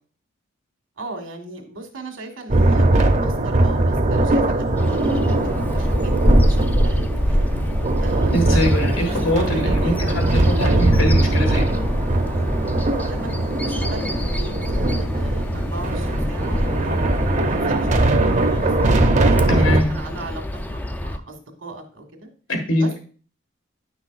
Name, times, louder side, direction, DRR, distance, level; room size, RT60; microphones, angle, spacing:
voice 1, 1.0-7.4 8.0-10.2 13.1-18.1 18.5-18.7 19.2-20.4 20.7-22.3 22.7-23.0, right 2 dB, 90° right, 2 dB, 1.7 m, -37 dB
sound 1, 2.5-19.8, right 2 dB, 35° right, 0.6 m, -20 dB
Bird vocalization bird call bird song, 4.8-21.2, equal, 10° left, 0.4 m, -25 dB
voice 2, 8.3-11.8 19.5-19.9 22.5-23.0, left 1 dB, 80° left, 3 dB, 1.7 m, -23 dB
10.0 x 6.0 x 2.4 m, 0.40 s
head